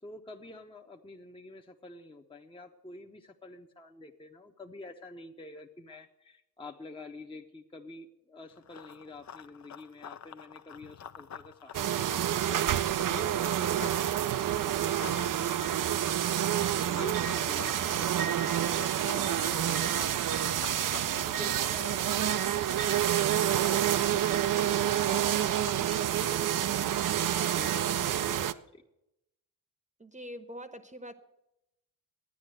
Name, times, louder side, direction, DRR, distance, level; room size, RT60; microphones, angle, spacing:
voice 1, 0.0-20.7 21.2-28.8, left 1 dB, 10° left, 2 dB, 0.9 m, -48 dB
Run, 8.5-14.0 14.3-26.5, left 8 dB, 40° left, 0.7 m, -48 dB
sound 1, 11.7-28.5, right 11 dB, 45° right, 0.6 m, -28 dB
voice 2, 20.9-21.6 30.0-31.1, equal, 15° right, 10 dB, 1.0 m, -45 dB
11.0 x 9.4 x 7.8 m, 0.87 s
supercardioid pair, 60°, 45 cm